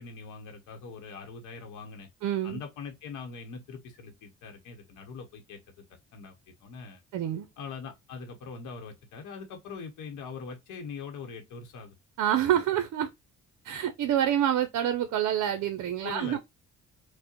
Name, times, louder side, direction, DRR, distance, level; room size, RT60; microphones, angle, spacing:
voice 1, 0.0-2.1 2.4-5.6 6.1-7.0 7.6-11.9 12.5-12.6 16.0-16.4, left 5 dB, 85° left, 0.9 m, -42 dB
voice 2, 2.2-2.6 7.1-7.5 12.2-13.1 13.6-16.4, right 10 dB, 70° right, 0.6 m, -27 dB
4.7 x 2.1 x 2.9 m
cardioid pair, 90°, 30 cm